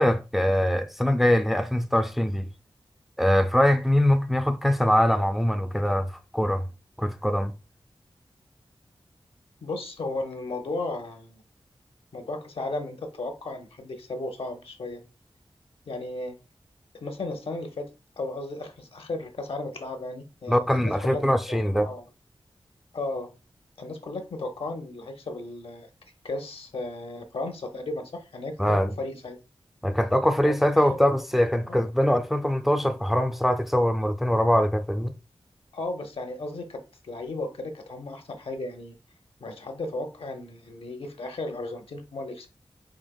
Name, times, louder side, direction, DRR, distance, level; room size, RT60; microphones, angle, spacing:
voice 1, 0.0-2.5 3.2-6.6 7.0-7.5 20.5-21.9 28.6-28.9 29.8-35.1, equal, ahead, 0.4 m, -23 dB
voice 2, 9.6-11.4 12.1-15.0 15.9-16.4 16.9-17.9 18.2-22.1 22.9-23.3 23.8-25.9 26.2-29.4 30.4-31.0 31.7-31.8 35.7-39.0 39.4-42.5, left 2 dB, 75° left, 0.8 m, -35 dB
5.1 x 2.8 x 2.2 m
wide cardioid pair, 80°, 10 cm